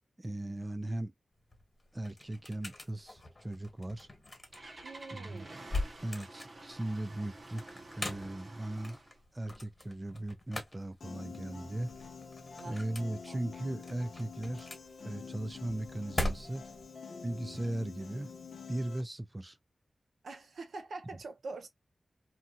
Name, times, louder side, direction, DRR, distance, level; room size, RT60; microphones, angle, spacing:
voice 1, 0.2-1.1 1.9-4.1 5.1-5.5 6.0-7.6 7.9-9.0 9.3-11.9 12.6-14.7 15.0-16.6 17.2-18.3 18.7-19.6, right 1 dB, 20° right, 0.4 m, -38 dB
sound 1, 1.3-16.8, left 2 dB, 30° left, 1.3 m, -42 dB
Engine starting, 4.0-9.2, right 2 dB, 40° right, 0.8 m, -50 dB
voice 2, 4.8-5.6 12.6-12.8 13.3-13.4 20.2-21.7, right 3 dB, 85° right, 0.6 m, -44 dB
Piano, 11.0-19.0, left 5 dB, 75° left, 0.7 m, -47 dB
2.7 x 2.4 x 2.5 m
wide cardioid pair, 130°, 0 cm